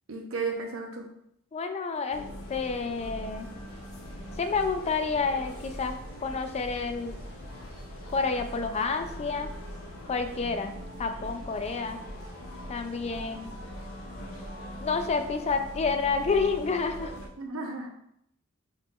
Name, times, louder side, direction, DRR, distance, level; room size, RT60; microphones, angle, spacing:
voice 1, 0.1-1.0 17.4-17.9, right 4 dB, 80° right, 2 dB, 0.8 m, -33 dB
voice 2, 1.5-3.5 4.4-7.2 8.1-9.5 10.1-12.0 12.7-13.5 14.8-17.1, left 4 dB, 30° left, 7 dB, 0.4 m, -29 dB
sound 1, 2.1-17.3, equal, 85° left, 0.8 m, -41 dB
5.8 x 3.7 x 2.4 m, 0.76 s
head